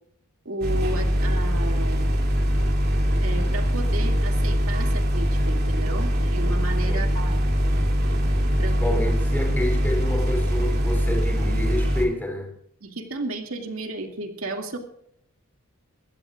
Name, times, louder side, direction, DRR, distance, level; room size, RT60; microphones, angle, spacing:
voice 1, 0.4-2.3 3.2-7.5 8.6-8.8 12.8-14.8, right 2 dB, 80° right, 2.4 m, -33 dB
sound 1, 0.6-12.1, equal, 45° right, 2.8 m, -22 dB
voice 2, 8.5-12.5, left 1 dB, 10° left, 3.4 m, -29 dB
22.0 x 16.5 x 2.5 m
head